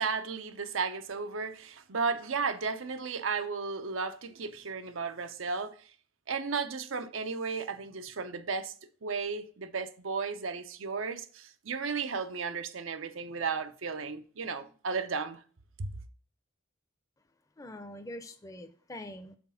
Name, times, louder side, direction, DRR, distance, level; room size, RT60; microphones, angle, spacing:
voice 1, 0.0-5.7 6.3-8.7 9.0-15.4 15.8-15.9, right 5 dB, 90° right, 0.7 m, -34 dB
voice 2, 17.6-19.4, left 1 dB, 15° left, 0.5 m, -44 dB
6.0 x 4.1 x 5.6 m
head